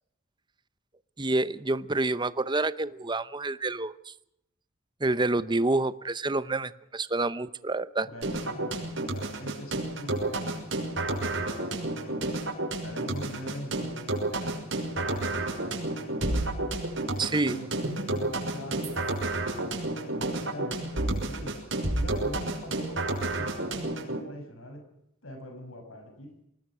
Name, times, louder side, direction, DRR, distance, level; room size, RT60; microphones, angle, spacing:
voice 1, 1.2-4.1 5.0-8.1 17.2-17.6, right 2 dB, 20° right, 15 dB, 0.8 m, -28 dB
voice 2, 8.1-12.4 12.8-16.4 17.0-21.6 21.9-24.8 25.2-26.3, equal, 85° left, 5 dB, 6.7 m, -43 dB
sound 1, 8.2-24.2, right 2 dB, 65° right, 6.1 m, -31 dB
25.5 x 20.0 x 6.2 m, 0.80 s
head